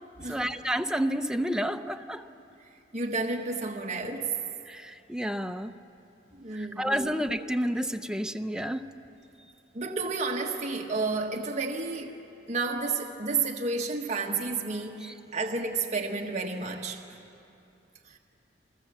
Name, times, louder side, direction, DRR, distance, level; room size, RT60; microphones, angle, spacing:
voice 1, 0.3-2.2 4.7-5.7 6.5-8.8 15.0-15.1, equal, 5° right, 0.7 m, -30 dB
voice 2, 2.9-4.4 6.3-7.0 9.7-12.2 12.5-17.0 18.1-18.2, right 3 dB, 40° right, 1.5 m, -31 dB
29.5 x 19.5 x 7.5 m
head